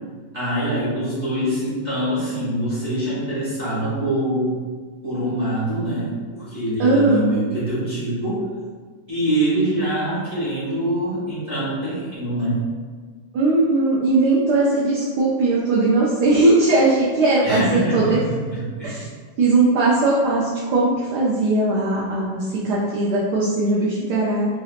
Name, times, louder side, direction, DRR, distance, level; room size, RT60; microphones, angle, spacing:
voice 1, 0.3-4.6 5.0-8.4 9.1-12.6 17.4-18.9, right 1 dB, 30° right, -11 dB, 1.1 m, -24 dB
voice 2, 6.8-7.4 13.3-18.2 18.8-19.0 19.4-24.5, right 2 dB, 70° right, -6 dB, 1.2 m, -19 dB
3.9 x 2.7 x 2.4 m, 1.5 s
omnidirectional pair, 1.9 m